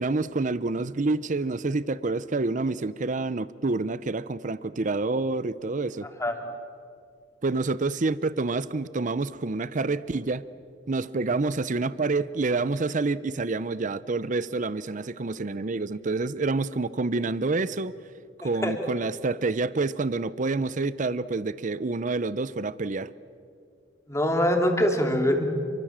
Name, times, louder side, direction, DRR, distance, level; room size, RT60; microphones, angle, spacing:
voice 1, 0.0-6.1 7.4-10.4 10.9-17.9 18.4-23.1, right 3 dB, 45° right, 0.6 m, -28 dB
voice 2, 24.1-25.4, equal, 15° left, 3.1 m, -23 dB
29.0 x 24.0 x 7.5 m
head